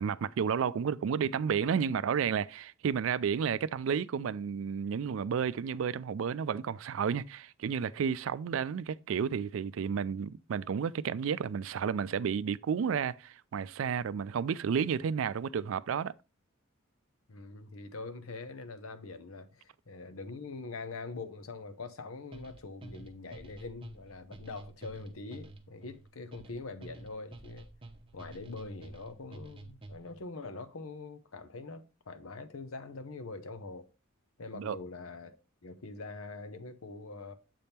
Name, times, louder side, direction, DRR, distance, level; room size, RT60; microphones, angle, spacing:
voice 1, 0.0-16.1 34.5-34.8, right 7 dB, 70° right, 0.3 m, -31 dB
voice 2, 17.3-27.7 28.1-33.9 34.4-35.4 35.6-37.3, left 3 dB, 90° left, 0.8 m, -43 dB
sound 1, 22.3-30.2, right 2 dB, 25° right, 0.8 m, -50 dB
7.5 x 3.5 x 4.2 m
head